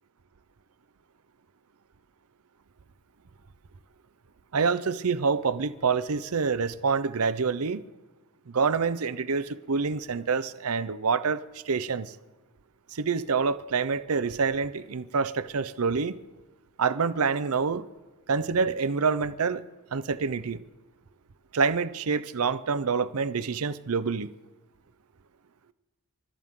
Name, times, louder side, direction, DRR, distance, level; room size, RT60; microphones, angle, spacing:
voice 1, 4.5-7.8 8.5-12.1 12.9-16.2 16.8-17.8 18.3-19.6 19.9-20.6 21.5-24.3, right 5 dB, 80° right, 0.7 m, -27 dB
28.0 x 13.0 x 3.7 m
head